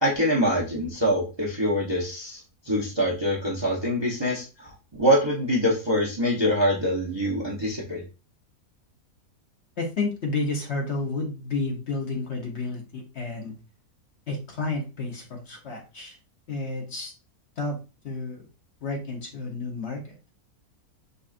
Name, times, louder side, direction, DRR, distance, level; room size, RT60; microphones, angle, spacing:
voice 1, 0.0-8.0, equal, 25° right, -4 dB, 0.6 m, -25 dB
voice 2, 9.8-13.6 14.3-16.2 16.5-17.1 17.6-17.8 18.0-18.4 18.8-20.2, left 3 dB, 55° left, 1 dB, 1.0 m, -31 dB
5.2 x 2.4 x 2.4 m, 0.30 s
omnidirectional pair, 1.6 m